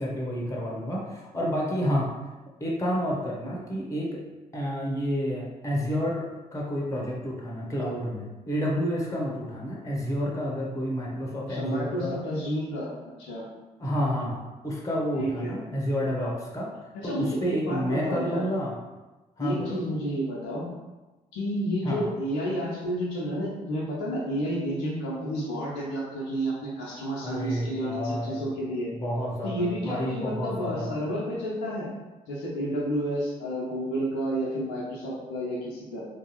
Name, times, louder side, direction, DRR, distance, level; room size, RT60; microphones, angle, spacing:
voice 1, 0.0-2.1 2.6-4.2 4.5-12.2 13.8-16.7 17.0-18.7 19.4-19.8 21.8-22.0 27.2-28.5 28.9-30.9, equal, 15° left, -3 dB, 1.0 m, -30 dB
voice 2, 11.5-12.9 13.2-13.4 15.2-15.5 16.9-18.4 19.4-20.7 21.3-28.9 29.4-31.9 32.3-36.0, equal, 65° left, -6 dB, 0.7 m, -30 dB
3.3 x 2.7 x 2.9 m, 1.1 s
figure-of-eight pair, 40°, 21 cm